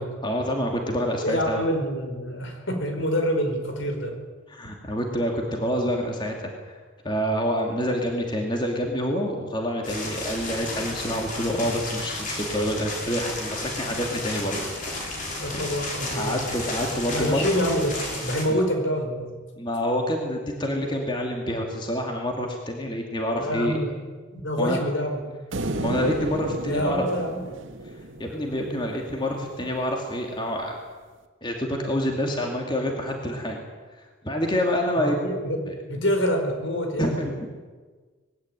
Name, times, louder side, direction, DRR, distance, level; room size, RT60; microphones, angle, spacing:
voice 1, 0.2-1.6 4.5-6.8 7.0-14.6 16.2-17.5 18.5-18.6 19.6-23.8 24.6-24.8 25.8-27.0 27.8-30.8 31.4-33.6 34.0-35.3 35.7-35.8 37.0-37.5, equal, 20° left, 1 dB, 2.4 m, -27 dB
voice 2, 1.2-4.2 15.4-16.4 17.0-19.3 23.4-24.0 24.3-25.2 26.6-27.4 35.0-37.1, equal, 65° left, 4 dB, 4.9 m, -26 dB
sound 1, 9.8-18.4, left 2 dB, 40° left, 5.4 m, -33 dB
sound 2, 25.5-28.9, right 2 dB, 70° right, 1.9 m, -32 dB
20.5 x 17.0 x 9.9 m, 1.4 s
head